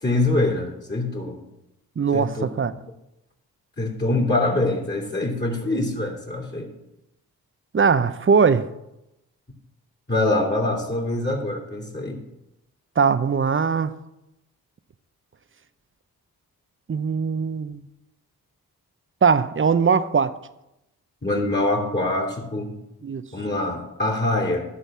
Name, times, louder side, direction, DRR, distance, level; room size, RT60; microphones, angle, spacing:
voice 1, 0.0-1.4 2.1-2.4 3.8-6.7 10.1-12.2 21.2-22.7 23.3-24.7, left 2 dB, 25° left, 2.5 m, -24 dB
voice 2, 2.0-2.7 7.7-8.7 13.0-13.9 16.9-17.8 19.2-20.3 23.0-23.2, right 5 dB, 35° right, 0.7 m, -20 dB
11.0 x 4.1 x 7.4 m
supercardioid pair, 40°, 37 cm